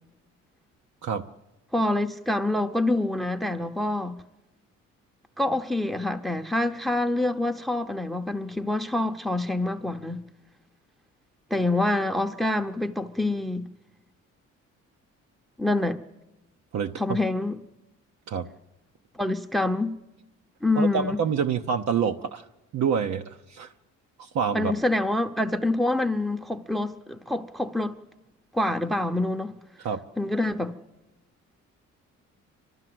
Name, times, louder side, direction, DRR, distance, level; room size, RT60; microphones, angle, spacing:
voice 1, 1.7-4.2 5.4-10.2 11.5-13.7 15.6-16.0 17.0-17.6 19.1-20.0 20.6-21.2 24.5-28.0 28.5-29.5 30.2-30.7, left 2 dB, ahead, 0.8 m, -26 dB
voice 2, 16.7-17.2 18.3-18.5 20.7-22.5 22.7-23.7 24.2-24.7 29.8-30.0, right 6 dB, 65° right, 0.9 m, -27 dB
30.0 x 12.5 x 7.8 m
cardioid pair, 90°, 30 cm